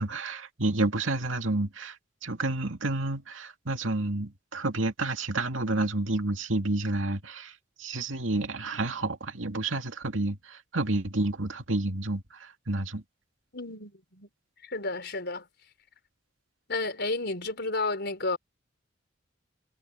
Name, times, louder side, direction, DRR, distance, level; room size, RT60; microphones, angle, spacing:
voice 1, 0.0-2.0 2.2-13.0, right 2 dB, 75° right, 2.4 m, -30 dB
voice 2, 13.5-14.3 14.6-15.5 16.7-18.4, left 3 dB, 60° left, 5.0 m, -32 dB
head